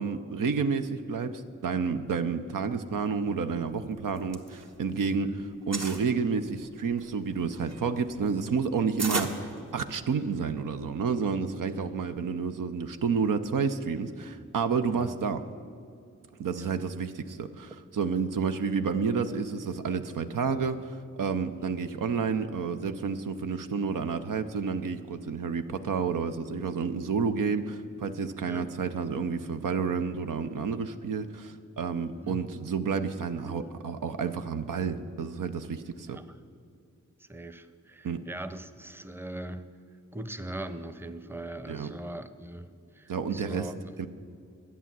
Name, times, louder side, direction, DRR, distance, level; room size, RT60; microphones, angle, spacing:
voice 1, 0.0-5.3 5.7-15.4 16.4-36.2 38.0-38.2 41.7-41.9 43.1-43.7 44.0-44.1, right 5 dB, 80° right, 8 dB, 0.6 m, -30 dB
sound 1, 4.0-5.1 5.4-6.1 6.7-10.2, right 3 dB, 55° right, 1.3 m, -35 dB
voice 2, 11.7-12.0 15.0-15.1 16.5-16.7 21.6-21.7 28.4-28.7 32.1-32.4 33.5-33.7 36.1-36.4 37.2-39.7 40.1-43.7, right 1 dB, 5° right, 11 dB, 0.7 m, -41 dB
11.0 x 8.3 x 7.4 m, 2.4 s
cardioid pair, 40°, 32 cm